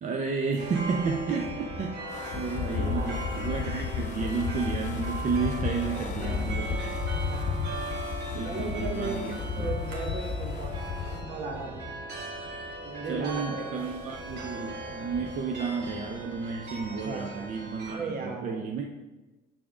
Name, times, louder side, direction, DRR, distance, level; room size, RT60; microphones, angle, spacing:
voice 1, 0.0-7.0 8.3-9.7 13.1-18.8, right 5 dB, 45° right, 2 dB, 0.6 m, -32 dB
sound 1, 0.6-17.9, right 1 dB, 80° right, 1.6 m, -39 dB
Wind, 2.1-11.3, left 6 dB, 45° left, 0.7 m, -33 dB
voice 2, 2.7-3.4 5.8-6.5 7.1-7.4 7.9-8.1 8.4-9.2 9.5-11.9 12.8-13.9 16.9-18.6, right 3 dB, 60° right, 3 dB, 1.3 m, -37 dB
7.2 x 3.6 x 6.1 m, 1.1 s
cardioid pair, 110°, 17 cm